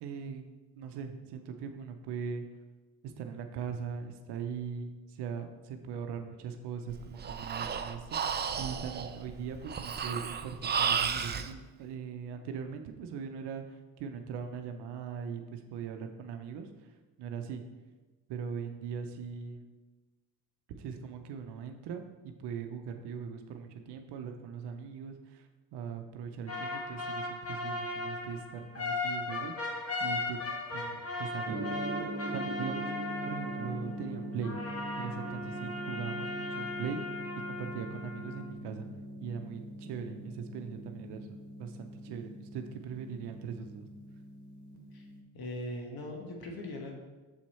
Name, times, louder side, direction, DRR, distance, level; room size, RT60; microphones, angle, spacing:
voice 1, 0.0-0.4 0.8-2.4 3.0-13.6 14.0-16.7 17.2-17.6 18.3-19.7 20.7-25.4 25.7-29.5 30.0-30.4 30.7-31.7 32.3-32.9 33.2-34.6 35.0-37.0 37.5-38.9 39.2-43.9, right 6 dB, 85° right, 6 dB, 0.7 m, -40 dB
Breathing, 6.9-11.5, right 6 dB, 25° right, 0.4 m, -33 dB
sound 1, 26.5-34.0 34.4-38.5, left 2 dB, 35° left, 1.3 m, -37 dB
Gong, 31.4-45.2, right 1 dB, 45° right, 1.4 m, -42 dB
voice 2, 45.3-46.9, left 1 dB, 65° left, 1 dB, 1.4 m, -40 dB
7.2 x 4.5 x 4.2 m, 1.2 s
cardioid pair, 85°, 40 cm